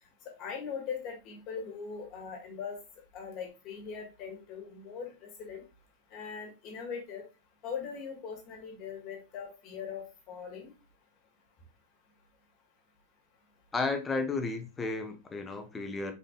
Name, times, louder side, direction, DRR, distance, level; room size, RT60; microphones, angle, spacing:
voice 1, 0.4-2.8 3.1-5.6 6.1-7.2 7.6-10.7, left 6 dB, 35° left, 1.8 m, -40 dB
voice 2, 13.7-16.1, left 3 dB, 15° left, 0.8 m, -33 dB
5.1 x 4.0 x 2.3 m
figure-of-eight pair, 90°, 0 cm